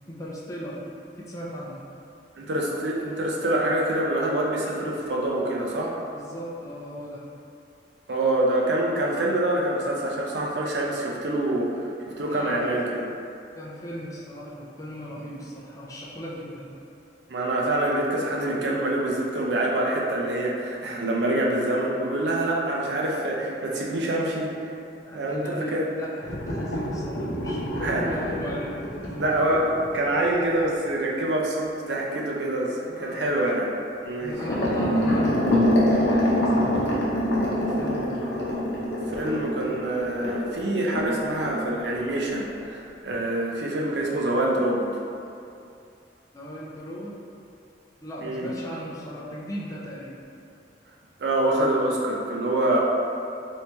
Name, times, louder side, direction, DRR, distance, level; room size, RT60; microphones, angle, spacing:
voice 1, 0.1-0.8 1.2-1.8 6.1-7.2 12.2-12.7 13.5-16.7 25.0-29.3 32.9-33.4 34.2-37.0 37.4-38.4 46.3-47.1 48.0-50.2, equal, 20° left, -6 dB, 0.4 m, -37 dB
voice 2, 2.4-6.0 8.1-11.8 12.1-13.1 17.3-24.5 25.1-25.8 27.8-28.1 29.2-33.7 34.0-34.4 39.1-44.9 48.2-48.5 51.2-52.8, right 1 dB, 80° right, -2 dB, 0.5 m, -26 dB
sound 1, 26.2-30.9 34.3-41.1 41.4-41.6 41.9-42.0 42.5-42.6, left 1 dB, 90° left, 0.7 m, -25 dB
3.0 x 2.7 x 3.3 m, 2.6 s
head